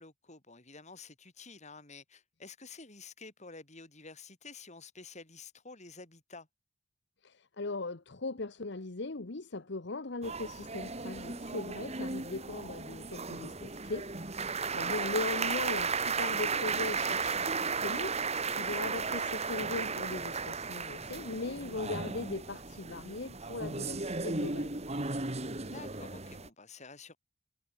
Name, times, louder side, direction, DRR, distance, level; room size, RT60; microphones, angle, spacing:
voice 1, 0.0-6.5 14.8-15.1 25.6-27.2, left 4 dB, 35° left, 4.9 m, -50 dB
voice 2, 7.2-24.7, left 3 dB, 60° left, 1.1 m, -39 dB
sound 1, 10.2-26.5, right 4 dB, 30° right, 2.6 m, -35 dB
head